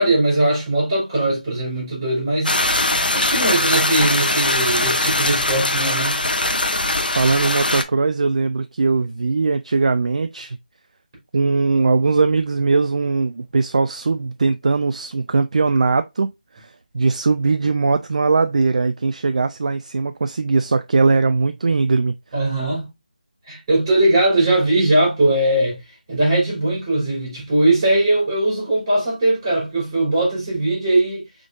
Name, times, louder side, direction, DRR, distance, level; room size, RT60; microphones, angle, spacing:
voice 1, 0.0-2.6 3.1-6.2 22.3-22.9 23.5-25.8 26.1-31.2, right 1 dB, 25° right, 3.0 m, -19 dB
sound 1, 2.4-7.8, left 2 dB, 85° left, 0.8 m, -21 dB
voice 2, 7.2-10.6 11.3-16.3 16.5-22.1, right 4 dB, 50° right, 0.3 m, -20 dB
5.0 x 3.7 x 2.5 m
figure-of-eight pair, 165°, 5 cm